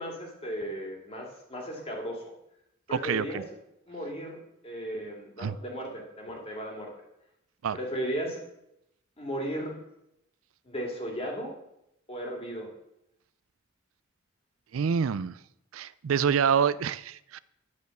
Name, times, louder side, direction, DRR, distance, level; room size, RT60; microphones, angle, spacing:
voice 1, 0.0-2.2 2.9-3.4 3.9-6.9 7.7-8.4 9.2-9.8 10.6-11.5 12.1-12.7, equal, 30° left, 2.7 m, -35 dB
voice 2, 2.9-3.4 5.4-5.6 7.6-7.8 14.7-15.4 15.7-17.4, right 7 dB, 75° right, 0.4 m, -27 dB
11.5 x 5.4 x 7.9 m
head